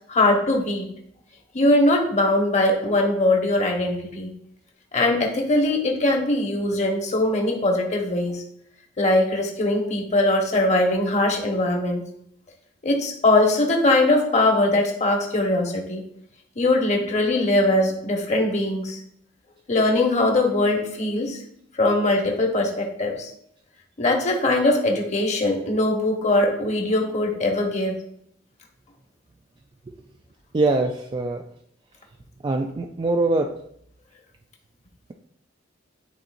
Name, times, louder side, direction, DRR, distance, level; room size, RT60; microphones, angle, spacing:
voice 1, 0.1-0.9 1.5-4.3 4.9-8.4 9.0-12.0 12.8-16.0 16.6-19.0 19.7-21.4 21.8-23.3 24.0-28.0, left 2 dB, 40° left, 1 dB, 1.2 m, -21 dB
voice 2, 30.5-31.4 32.4-33.5, right 2 dB, 25° right, 3 dB, 0.3 m, -23 dB
11.5 x 3.9 x 2.6 m, 0.70 s
head